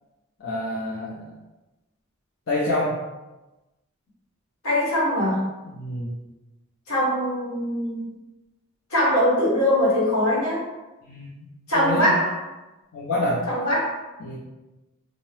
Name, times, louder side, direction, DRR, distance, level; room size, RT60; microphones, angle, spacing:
voice 1, 0.4-1.3 2.5-3.0 5.7-6.1 11.0-11.5 11.7-12.1 12.9-13.5 14.2-14.4, left 1 dB, 60° left, -7 dB, 0.5 m, -27 dB
voice 2, 4.6-5.4 6.9-8.0 8.9-10.6 11.7-12.4 13.5-14.0, equal, 80° left, -6 dB, 1.1 m, -22 dB
2.6 x 2.0 x 3.1 m, 1.1 s
head